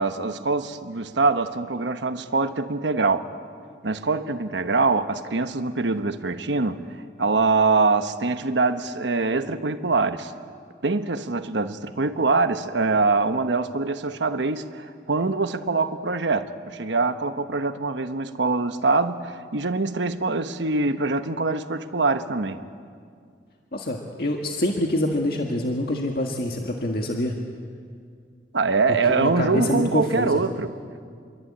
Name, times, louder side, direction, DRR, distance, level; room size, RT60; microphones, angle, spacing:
voice 1, 0.0-3.3 3.8-10.3 10.8-22.6 28.5-30.7, right 3 dB, 85° right, 1.1 m, -24 dB
voice 2, 23.7-27.4 29.1-30.4, left 1 dB, 55° left, 1.8 m, -26 dB
27.5 x 23.0 x 8.8 m
head